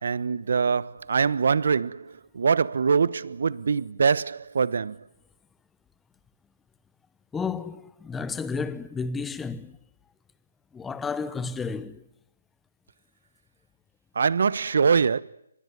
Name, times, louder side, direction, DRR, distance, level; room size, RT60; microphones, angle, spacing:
voice 1, 0.0-2.0 2.3-5.0 14.2-15.2, right 5 dB, 60° right, 1.1 m, -23 dB
voice 2, 7.3-9.8 10.7-12.0, left 5 dB, 10° left, 0.9 m, -32 dB
24.5 x 21.5 x 9.4 m
figure-of-eight pair, 150°, 0 cm